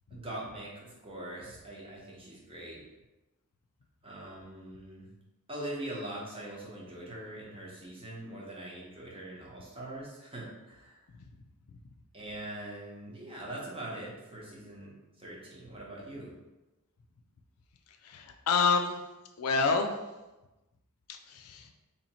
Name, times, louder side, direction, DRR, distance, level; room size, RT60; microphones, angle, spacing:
voice 1, 0.1-2.8 4.0-5.1 5.5-11.0 12.1-16.3, right 1 dB, 25° right, -4 dB, 0.9 m, -42 dB
voice 2, 18.0-19.0 19.4-20.0 21.3-21.7, left 4 dB, 75° left, 4 dB, 0.4 m, -28 dB
2.9 x 2.8 x 4.1 m, 1.1 s
head